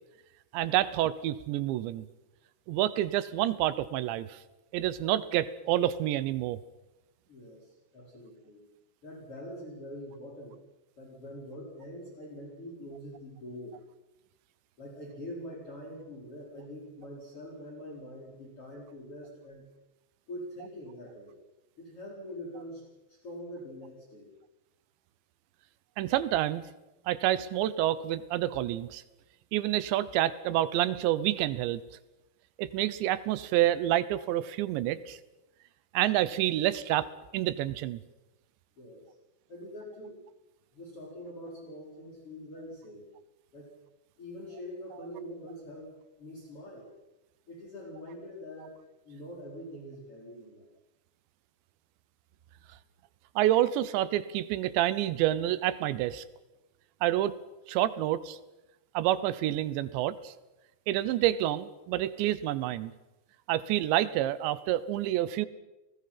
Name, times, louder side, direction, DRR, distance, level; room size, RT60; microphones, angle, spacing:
voice 1, 0.5-2.1 2.7-4.4 4.7-6.6 26.0-26.6 27.1-29.0 29.5-31.8 32.6-35.2 35.9-37.1 37.3-38.0 53.4-56.2 57.0-57.3 57.7-58.4 58.9-60.3 60.9-62.9 63.5-65.5, right 13 dB, 80° right, 16 dB, 3.1 m, -28 dB
voice 2, 7.3-8.6 9.0-10.6 11.0-13.8 14.8-19.6 20.3-21.4 21.8-22.8 23.1-24.3 38.8-39.1 39.5-40.2 40.7-43.1 43.5-43.7 44.2-45.9 46.2-46.9 47.5-48.7 49.0-50.7, equal, 30° left, -1 dB, 5.1 m, -44 dB
29.5 x 19.5 x 5.8 m, 0.98 s
omnidirectional pair, 5.1 m